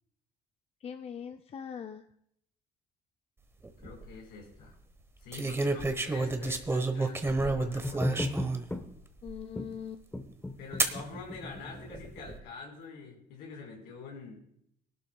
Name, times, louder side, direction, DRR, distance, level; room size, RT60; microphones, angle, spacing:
voice 1, 0.8-2.0 9.2-10.0, left 7 dB, 35° left, 6 dB, 0.6 m, -41 dB
sound 1, 3.6-4.1 5.3-8.7 9.3-9.4 10.8-11.0 11.9-12.4, right 3 dB, 15° right, 1.0 m, -30 dB
voice 2, 3.8-4.7 5.2-8.3 10.6-14.4, left 4 dB, 90° left, -1 dB, 4.6 m, -46 dB
sound 2, 7.8-8.9 9.6-9.7 10.1-12.2, left 2 dB, 10° left, 1.1 m, -36 dB
21.5 x 11.5 x 2.3 m, 0.72 s
cardioid pair, 110°, 17 cm